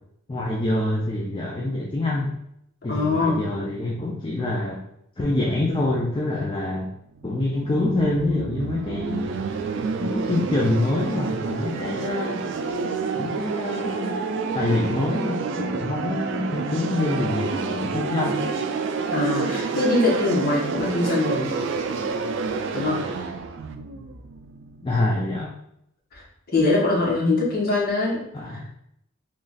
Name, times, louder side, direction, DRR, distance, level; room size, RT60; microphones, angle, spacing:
voice 1, 0.3-2.3 2.8-4.8 5.2-6.9 7.2-9.3 10.0-12.5 13.2-14.2 14.5-18.4 24.8-25.5 28.3-28.7, left 2 dB, 25° left, -2 dB, 0.4 m, -26 dB
voice 2, 2.9-3.4 19.1-21.6 22.7-23.0 26.1-26.2 26.5-28.2 28.5-28.6, left 2 dB, 50° left, -5 dB, 1.2 m, -22 dB
Psychedelic Atmo, 7.2-25.0, right 4 dB, 60° right, 0.3 m, -29 dB
3.0 x 2.4 x 3.9 m, 0.75 s
head